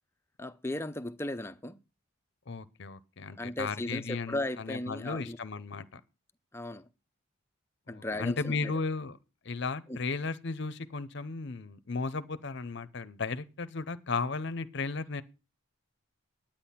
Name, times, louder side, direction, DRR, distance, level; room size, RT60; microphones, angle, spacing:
voice 1, 0.4-1.8 3.4-5.4 6.5-6.8 7.9-8.7 9.9-10.0, left 1 dB, 10° left, 0.5 m, -36 dB
voice 2, 2.5-6.0 7.9-9.2 9.4-15.2, left 4 dB, 55° left, 0.7 m, -35 dB
10.5 x 8.8 x 5.7 m
head